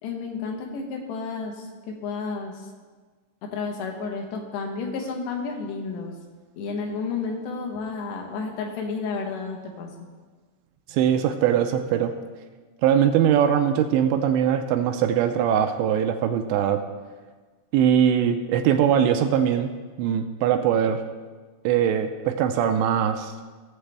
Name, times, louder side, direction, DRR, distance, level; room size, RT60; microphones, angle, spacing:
voice 1, 0.0-2.6 3.5-6.1 6.6-9.9, left 4 dB, 75° left, 2 dB, 3.0 m, -31 dB
voice 2, 10.9-12.1 12.8-16.8 17.7-19.7 20.0-21.0 21.6-23.3, right 9 dB, 85° right, 6 dB, 2.7 m, -21 dB
17.0 x 7.3 x 3.4 m, 1.4 s
omnidirectional pair, 5.3 m